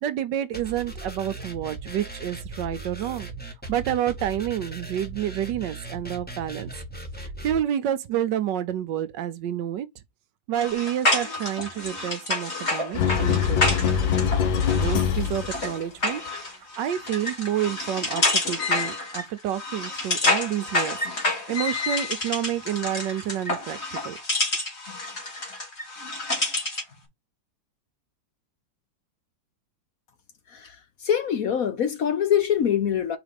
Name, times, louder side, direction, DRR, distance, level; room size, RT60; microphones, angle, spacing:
voice 1, 0.0-3.3 3.7-6.7 7.4-9.9 10.5-13.8 14.8-21.0 21.5-24.2, right 11 dB, 75° right, 1.3 m, -29 dB
sound 1, 0.5-7.6, right 2 dB, 5° left, 1.3 m, -38 dB
sound 2, 10.5-26.9, left 2 dB, 35° left, 2.4 m, -28 dB
sound 3, 12.9-15.7, left 8 dB, 80° left, 1.7 m, -23 dB
voice 2, 31.0-33.2, left 9 dB, 60° left, 1.1 m, -23 dB
4.9 x 3.9 x 5.1 m
omnidirectional pair, 2.1 m